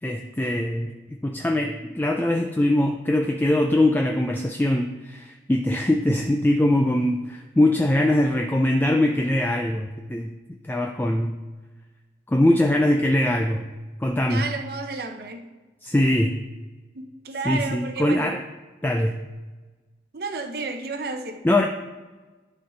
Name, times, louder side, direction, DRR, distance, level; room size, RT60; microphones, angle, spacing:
voice 1, 0.0-10.3 10.6-11.4 12.3-13.7 14.0-14.5 15.8-16.3 17.5-18.4 18.8-19.2 21.4-21.7, left 1 dB, 10° left, 3 dB, 0.3 m, -22 dB
voice 2, 14.3-15.4 16.9-18.3 20.1-21.4, right 3 dB, 55° right, 6 dB, 0.7 m, -31 dB
11.5 x 4.3 x 3.9 m, 1.3 s
head